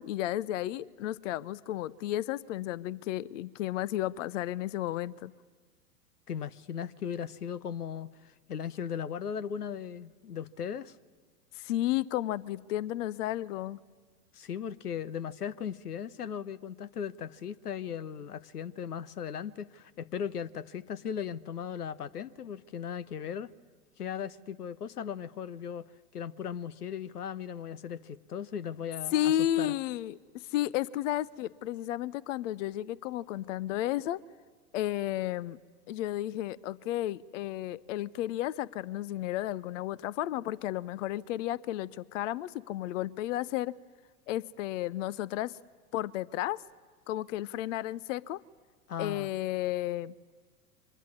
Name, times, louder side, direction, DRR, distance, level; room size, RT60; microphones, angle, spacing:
voice 1, 0.0-5.3 11.5-13.8 29.1-34.2 34.7-35.6 35.9-43.7 44.3-45.6 45.9-46.6 47.1-48.4 49.0-50.1, left 13 dB, 55° left, 0.7 m, -33 dB
voice 2, 6.3-11.0 14.3-23.5 24.0-29.8 48.9-49.3, left 8 dB, 85° left, 0.9 m, -37 dB
24.5 x 19.5 x 9.7 m
hypercardioid pair, 100°, 45 cm